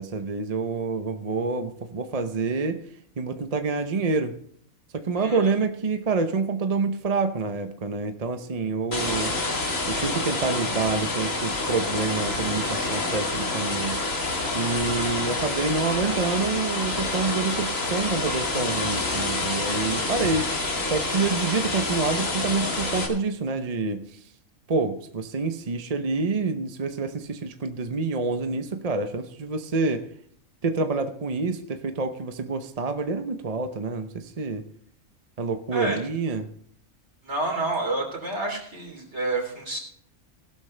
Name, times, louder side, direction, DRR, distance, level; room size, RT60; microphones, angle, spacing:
voice 1, 0.0-2.8 3.2-4.4 4.9-9.3 9.9-14.0 14.5-20.5 20.9-24.2 24.7-30.1 30.6-34.6 35.4-36.5, right 4 dB, 35° right, 8 dB, 0.7 m, -27 dB
voice 2, 5.2-5.5 14.8-15.2 35.7-36.0 37.2-39.8, right 2 dB, 55° right, 1 dB, 3.7 m, -29 dB
sound 1, 8.9-23.1, left 2 dB, 75° left, 2.7 m, -28 dB
17.0 x 12.0 x 3.3 m, 0.65 s
omnidirectional pair, 1.4 m